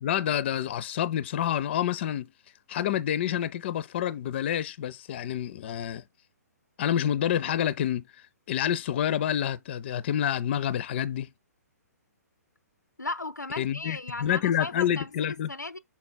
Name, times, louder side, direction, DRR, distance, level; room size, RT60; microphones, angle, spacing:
voice 1, 0.0-2.3 2.7-6.0 6.8-8.0 8.5-11.3 13.6-15.5, left 10 dB, 40° left, 0.5 m, -28 dB
voice 2, 13.0-15.8, left 2 dB, 85° left, 0.5 m, -36 dB
6.0 x 4.1 x 4.0 m
figure-of-eight pair, 125°, 9 cm